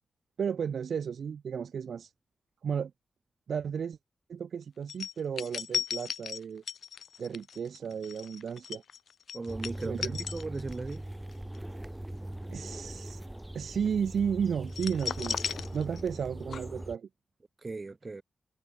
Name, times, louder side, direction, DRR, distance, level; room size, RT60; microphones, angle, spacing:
voice 1, 0.4-2.1 2.6-2.9 3.5-4.0 4.3-6.6 7.2-8.8 9.8-10.2 12.5-13.2 13.5-15.4 15.7-17.1, right 7 dB, 85° right, 1.2 m, -33 dB
sound 1, 4.9-11.0 11.3-11.6 14.7-16.3 16.5-16.6, left 7 dB, 85° left, 6.9 m, -36 dB
voice 2, 9.3-11.1 17.6-18.2, right 3 dB, 35° right, 6.6 m, -37 dB
sound 2, 9.5-17.0, right 1 dB, 10° right, 4.4 m, -41 dB
wide cardioid pair, 85°, 0 cm